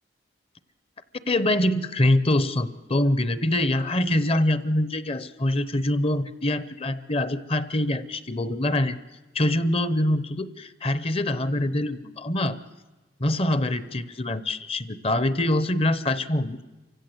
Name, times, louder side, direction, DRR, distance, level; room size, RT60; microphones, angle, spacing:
voice 1, 1.3-9.0 9.3-12.6 13.2-16.6, left 1 dB, 30° left, 15 dB, 0.8 m, -24 dB
27.5 x 16.0 x 7.9 m, 1.2 s
head